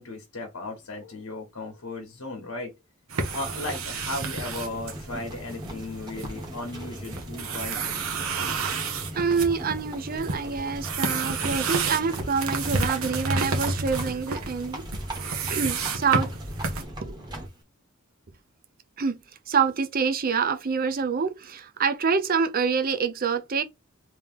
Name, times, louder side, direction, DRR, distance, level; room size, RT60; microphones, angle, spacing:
voice 1, 0.0-2.7 3.3-7.9, left 2 dB, 80° left, 1.2 m, -36 dB
sound 1, 3.1-16.8, right 4 dB, 75° right, 1.0 m, -31 dB
Livestock farm animals working animals, 3.2-17.6, equal, 20° right, 1.2 m, -39 dB
voice 2, 9.2-14.8 15.5-16.3 17.0-17.2 19.0-19.2 19.5-23.6, right 5 dB, 45° right, 0.6 m, -26 dB
3.3 x 2.9 x 3.5 m
head